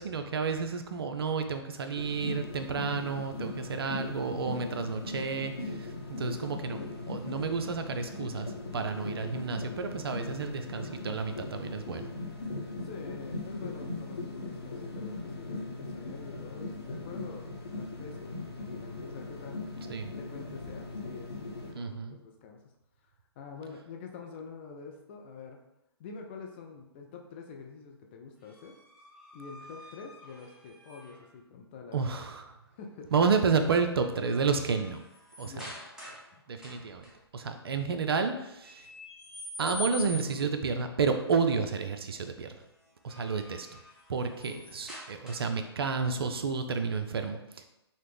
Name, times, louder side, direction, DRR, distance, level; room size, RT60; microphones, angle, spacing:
voice 1, 0.0-6.8 7.1-12.1 19.9-20.1 21.7-22.2 31.9-32.6 33.1-35.0 35.4-35.5 36.5-37.0 37.3-38.9 39.6-42.5 43.0-43.7 44.1-47.7, right 5 dB, 60° right, 7 dB, 0.4 m, -31 dB
sound 1, 1.9-21.7, left 2 dB, 70° left, 0.8 m, -39 dB
voice 2, 12.8-17.5 17.7-19.9 20.1-22.6 23.0-25.6 26.0-28.8 29.3-32.1 32.8-33.1 35.4-35.7 36.3-36.4 44.4-44.6, left 5 dB, 25° left, 2 dB, 0.3 m, -46 dB
sound 2, 28.4-31.3 33.1-33.4 33.8-36.3 36.6-37.1 38.6-40.5 42.8-45.7, left 3 dB, 5° right, 0.7 m, -45 dB
4.0 x 2.0 x 3.2 m, 0.91 s
figure-of-eight pair, 130°, 14 cm